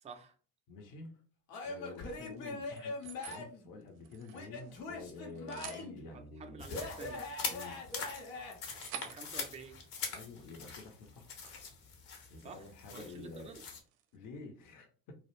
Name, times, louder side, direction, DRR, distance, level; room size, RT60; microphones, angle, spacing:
voice 1, 0.0-0.3 6.1-7.2 8.9-9.8 12.4-12.6 12.9-13.7, right 5 dB, 15° right, 5 dB, 0.4 m, -50 dB
voice 2, 0.7-1.2 1.6-6.8 7.5-7.8 10.1-11.4 12.3-13.5 14.1-15.1, left 3 dB, 45° left, 3 dB, 0.7 m, -49 dB
Male speech man speaking / Yell / Laughter, 1.5-3.6 4.3-6.0 6.7-8.5, left 3 dB, 80° left, 0.8 m, -42 dB
sound 1, 1.9-3.4 3.8-5.0 5.3-5.9 6.7-11.7 12.1-12.3 12.6-14.2, right 9 dB, 70° right, 0.5 m, -52 dB
sound 2, 6.6-13.8, left 5 dB, 60° left, 1.0 m, -43 dB
2.3 x 2.1 x 3.0 m, 0.41 s
hypercardioid pair, 55°, 46 cm